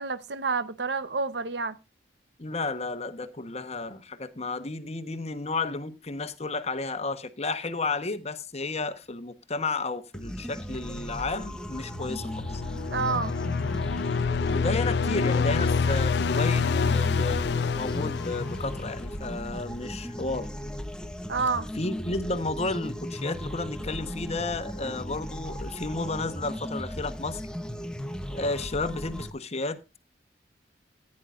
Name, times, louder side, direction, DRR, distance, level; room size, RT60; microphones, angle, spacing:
voice 1, 0.0-1.8 12.9-13.3 21.3-21.7, right 4 dB, 65° right, 1.0 m, -28 dB
voice 2, 2.4-12.6 14.4-20.5 21.7-27.4 28.3-30.0, left 3 dB, 35° left, 1.1 m, -32 dB
sound 1, 10.1-29.3, equal, 5° left, 1.0 m, -37 dB
sound 2, 11.8-19.2, left 5 dB, 65° left, 0.4 m, -27 dB
15.5 x 9.8 x 2.5 m
head